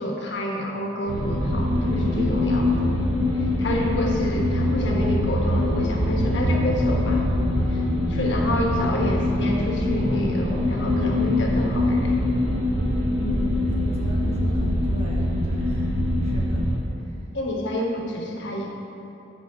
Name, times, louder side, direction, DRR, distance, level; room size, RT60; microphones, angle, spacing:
voice 1, 0.0-2.9 3.4-7.2 7.7-12.2 17.3-18.7, left 1 dB, 75° left, -1 dB, 1.2 m, -29 dB
sound 1, 1.1-16.8, left 1 dB, 90° right, 1.5 m, -23 dB
voice 2, 13.2-15.9 16.2-16.6, equal, 35° right, -4 dB, 1.4 m, -37 dB
8.4 x 4.9 x 5.5 m, 3.0 s
head